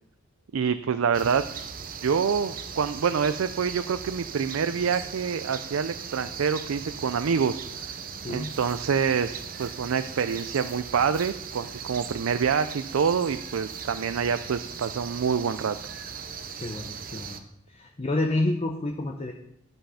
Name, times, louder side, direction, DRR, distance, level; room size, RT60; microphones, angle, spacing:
voice 1, 0.5-1.5 2.0-7.6 8.3-15.8, right 6 dB, 85° right, 11 dB, 0.4 m, -26 dB
sound 1, 1.1-17.4, right 6 dB, 45° right, 0.7 m, -38 dB
voice 2, 16.6-17.4 17.7-19.3, left 2 dB, 30° left, 3 dB, 0.7 m, -29 dB
11.5 x 5.5 x 5.7 m, 0.74 s
head